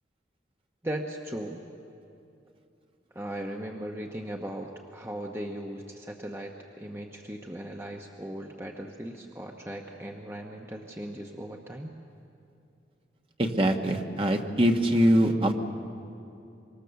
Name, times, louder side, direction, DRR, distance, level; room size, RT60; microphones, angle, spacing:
voice 1, 0.8-1.6 3.1-12.0, right 1 dB, 15° right, 1 dB, 1.0 m, -38 dB
voice 2, 13.4-15.5, equal, 30° right, 3 dB, 1.4 m, -23 dB
25.0 x 24.5 x 7.0 m, 2.7 s
head